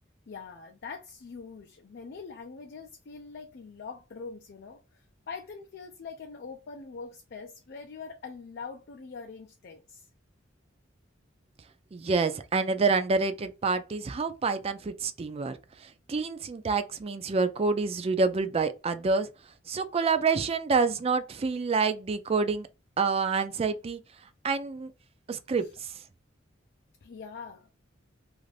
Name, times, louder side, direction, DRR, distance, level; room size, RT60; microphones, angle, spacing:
voice 1, 0.3-10.1 25.6-25.7 27.0-27.7, left 5 dB, 55° left, 0.4 m, -43 dB
voice 2, 11.9-19.3 19.7-22.7 23.0-24.0 24.4-24.9 25.3-26.0, right 4 dB, 30° right, 0.4 m, -27 dB
2.5 x 2.5 x 3.2 m
head